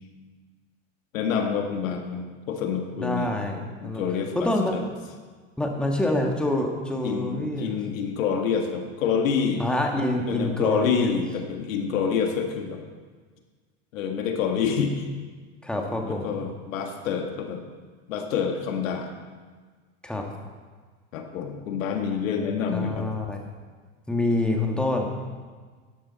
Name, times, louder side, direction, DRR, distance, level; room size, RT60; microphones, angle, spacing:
voice 1, 1.1-3.3 3.8-4.8 7.0-9.6 10.2-12.8 13.9-15.0 16.1-17.6 18.1-19.1 21.1-23.1, left 6 dB, 85° left, 4 dB, 1.7 m, -27 dB
voice 2, 3.0-4.0 4.3-4.8 5.6-7.8 9.6-11.1 15.6-16.3 20.0-20.2 22.7-23.4 24.1-25.1, left 1 dB, ahead, 1 dB, 1.7 m, -26 dB
13.0 x 10.5 x 4.2 m, 1.5 s
supercardioid pair, 110°, 39 cm